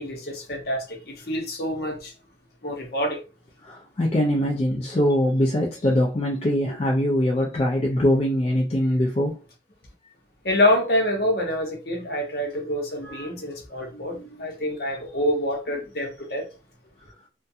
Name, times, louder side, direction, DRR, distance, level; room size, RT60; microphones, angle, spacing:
voice 1, 0.0-2.1 2.6-3.2 10.4-16.4, left 1 dB, 55° left, 0.8 m, -26 dB
voice 2, 3.6-9.4 13.9-14.3, equal, 35° left, 0.4 m, -23 dB
2.4 x 2.2 x 2.6 m
head